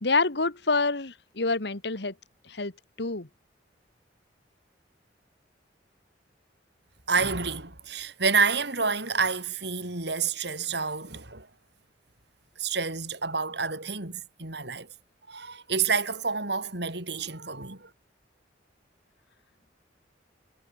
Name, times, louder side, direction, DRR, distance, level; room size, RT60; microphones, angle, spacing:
voice 1, 0.0-2.1 2.4-2.7 3.0-3.3, left 3 dB, 65° left, 1.8 m, -27 dB
voice 2, 7.1-11.5 12.6-14.9 15.3-17.9, right 5 dB, 65° right, 5.7 m, -29 dB
head